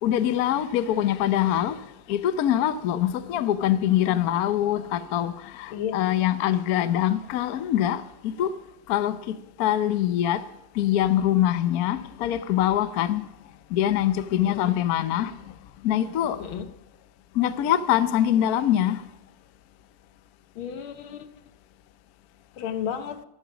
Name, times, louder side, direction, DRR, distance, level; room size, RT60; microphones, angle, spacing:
voice 1, 0.0-8.5 8.9-10.4 10.7-13.3 13.7-15.5 15.8-16.4 17.3-19.0, left 11 dB, 60° left, 1.0 m, -24 dB
voice 2, 5.7-6.1 14.4-14.8 16.4-16.7 20.6-21.3 22.6-23.3, left 8 dB, 90° left, 1.8 m, -33 dB
13.5 x 12.0 x 6.1 m
omnidirectional pair, 2.2 m